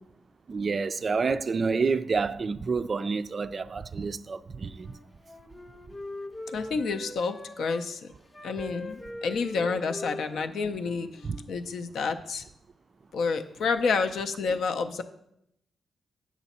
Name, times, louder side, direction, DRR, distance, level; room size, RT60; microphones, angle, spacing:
voice 1, 0.5-5.0 11.2-11.4, right 4 dB, 40° right, 0.3 m, -28 dB
Wind instrument woodwind instrument, 4.7-7.8 8.3-11.5, left 2 dB, 25° left, 0.7 m, -42 dB
voice 2, 6.5-8.1 8.4-11.1 11.5-12.4 13.1-15.0, left 4 dB, 70° left, 0.5 m, -29 dB
8.0 x 6.0 x 4.2 m
cardioid pair, 105°, 0 cm